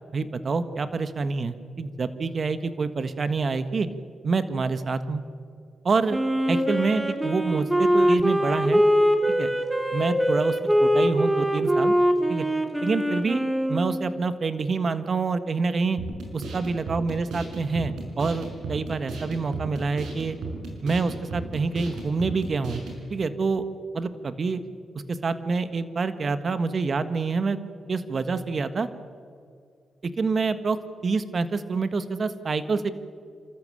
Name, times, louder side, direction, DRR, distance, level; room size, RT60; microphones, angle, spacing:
voice 1, 0.1-3.9 4.2-5.2 5.8-6.2 6.5-8.8 9.4-9.5 9.9-12.0 12.3-12.5 12.8-13.4 13.7-16.0 16.3-20.4 20.8-22.8 23.1-23.6 23.9-24.6 25.1-27.6 27.9-28.9 30.0-32.9, right 4 dB, 50° right, 11 dB, 1.5 m, -27 dB
Wind instrument woodwind instrument, 6.1-14.2, equal, 10° right, 2.6 m, -23 dB
sound 1, 16.0-23.0, right 3 dB, 85° right, 5.7 m, -35 dB
29.0 x 13.5 x 9.0 m, 2.3 s
cardioid pair, 60°, 0 cm